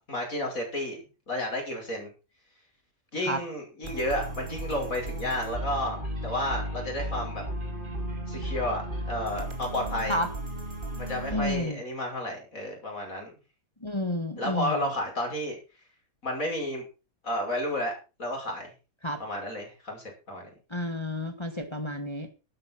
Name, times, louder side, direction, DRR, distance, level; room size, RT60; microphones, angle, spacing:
voice 1, 0.1-1.0 1.3-2.1 3.1-7.4 8.3-10.2 11.0-13.3 14.4-15.5 16.2-16.9 17.2-17.9 18.2-18.7 19.2-20.5, left 1 dB, 65° left, 1 dB, 6.2 m, -31 dB
sound 1, 3.8-11.6, right 1 dB, 35° right, 3.0 m, -35 dB
voice 2, 11.3-11.8 13.8-14.9 19.0-19.2 20.7-22.3, left 1 dB, 20° left, 7 dB, 1.6 m, -30 dB
12.0 x 9.6 x 6.0 m, 0.32 s
omnidirectional pair, 1.5 m